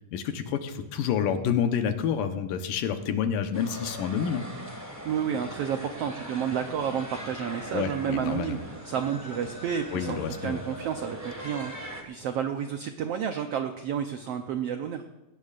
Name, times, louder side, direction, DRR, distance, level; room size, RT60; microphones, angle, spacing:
voice 1, 0.1-4.4 7.7-8.6 9.9-10.6, left 8 dB, 85° left, 7 dB, 2.7 m, -28 dB
sound 1, 3.5-12.0, right 1 dB, 10° right, 0.8 m, -41 dB
voice 2, 5.0-15.0, right 8 dB, 85° right, 6 dB, 1.3 m, -31 dB
19.0 x 17.0 x 2.5 m, 1.0 s
omnidirectional pair, 3.7 m